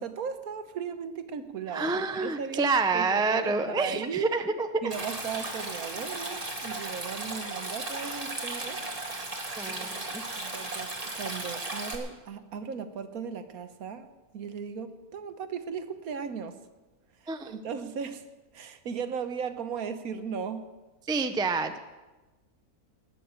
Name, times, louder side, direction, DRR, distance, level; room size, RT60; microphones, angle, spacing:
voice 1, 0.0-4.3 4.8-8.8 9.7-16.6 17.2-18.2 18.5-20.7, right 6 dB, 70° right, 10 dB, 1.4 m, -37 dB
voice 2, 1.7-4.8 9.6-10.2 17.3-17.5 21.1-21.8, right 4 dB, 5° right, 8 dB, 0.3 m, -28 dB
Stream, 4.9-12.0, right 2 dB, 25° right, 2.0 m, -36 dB
18.5 x 6.8 x 8.8 m, 1.2 s
omnidirectional pair, 1.6 m